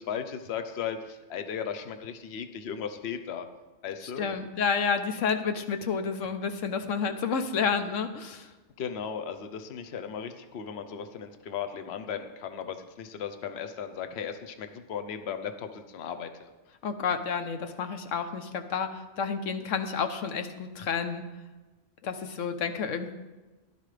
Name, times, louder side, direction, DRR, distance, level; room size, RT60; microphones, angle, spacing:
voice 1, 0.0-3.5 3.8-4.3 8.8-16.5, left 7 dB, 60° left, 9 dB, 1.0 m, -36 dB
voice 2, 4.0-8.5 16.8-21.2 22.0-23.1, left 6 dB, 85° left, 8 dB, 1.2 m, -30 dB
14.5 x 11.5 x 3.3 m, 1.2 s
omnidirectional pair, 1.3 m